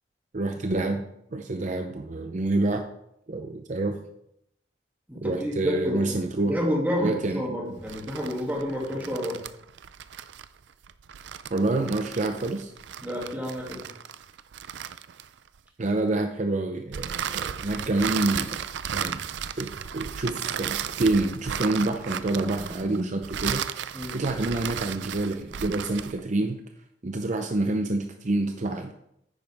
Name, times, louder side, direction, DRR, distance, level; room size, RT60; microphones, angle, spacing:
voice 1, 0.3-1.0 1.3-2.9 3.3-4.0 5.2-6.6 7.0-7.6 11.5-12.7 15.8-18.6 18.9-19.2 19.6-23.7 24.1-26.6 27.0-28.9, right 2 dB, 45° right, 5 dB, 0.6 m, -27 dB
voice 2, 5.1-6.1 6.4-9.4 13.0-13.8 23.9-24.2, equal, 10° right, -2 dB, 2.4 m, -29 dB
sound 1, 7.8-15.6 16.9-26.2, right 8 dB, 90° right, 0.4 m, -34 dB
9.9 x 9.2 x 3.5 m, 0.77 s
head